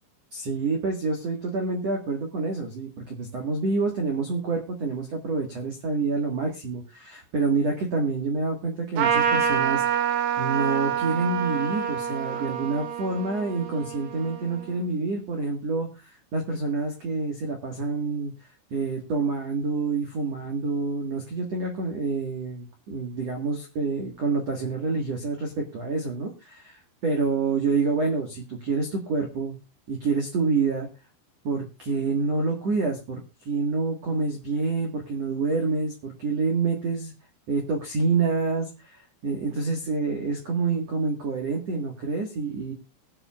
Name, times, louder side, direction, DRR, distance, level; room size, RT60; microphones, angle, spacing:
voice 1, 0.3-9.8 10.4-18.3 18.7-29.6 29.9-30.9 31.4-37.1 37.5-42.7, right 4 dB, 65° right, 1 dB, 1.6 m, -27 dB
Trumpet, 9.0-14.8, right 8 dB, 90° right, 4.5 m, -27 dB
22.5 x 7.7 x 2.4 m, 0.27 s
omnidirectional pair, 5.8 m